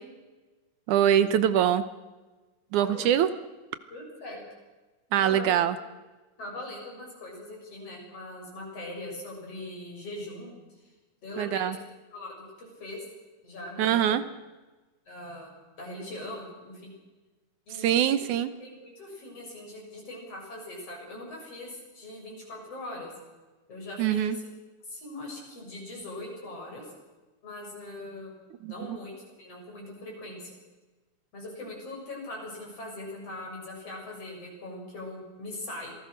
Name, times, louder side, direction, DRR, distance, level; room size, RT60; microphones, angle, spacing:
voice 1, 0.9-1.9 2.7-3.3 5.1-5.8 11.4-11.8 13.8-14.2 17.7-18.5 24.0-24.4 28.6-29.0, right 10 dB, 75° right, 13 dB, 2.3 m, -23 dB
voice 2, 2.8-3.2 3.9-4.4 5.2-5.7 6.4-10.5 11.2-11.6 12.1-13.0 13.4-14.0 15.1-15.5 15.8-16.9 17.7-18.2 18.6-23.1 23.7-24.4 24.8-26.9 27.4-28.3 28.7-30.5 31.3-35.9, left 1 dB, 50° left, -1 dB, 7.9 m, -41 dB
26.5 x 19.0 x 6.5 m, 1.2 s
omnidirectional pair, 3.6 m